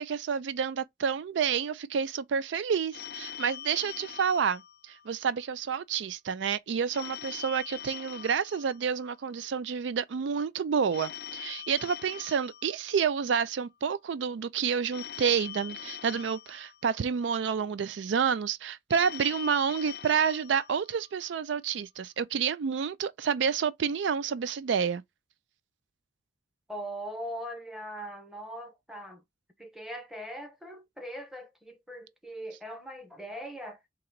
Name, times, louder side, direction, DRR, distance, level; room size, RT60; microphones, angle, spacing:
voice 1, 0.0-25.0, right 6 dB, 80° right, 0.4 m, -29 dB
Telephone, 2.9-5.4 6.9-9.4 10.9-13.4 14.9-17.4 18.9-21.4, left 10 dB, 55° left, 0.4 m, -43 dB
voice 2, 26.7-29.2 29.6-33.8, equal, ahead, 0.8 m, -40 dB
3.8 x 2.9 x 4.4 m
head